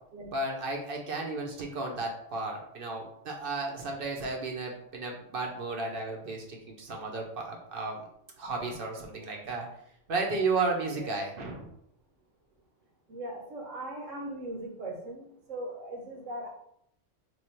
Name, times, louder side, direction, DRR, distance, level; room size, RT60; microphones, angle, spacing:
voice 1, 0.3-8.1 8.4-9.7 10.1-11.7, right 3 dB, 55° right, 0 dB, 0.8 m, -33 dB
voice 2, 13.1-16.5, right 1 dB, 85° right, -1 dB, 1.3 m, -39 dB
3.1 x 2.3 x 4.3 m, 0.70 s
omnidirectional pair, 1.3 m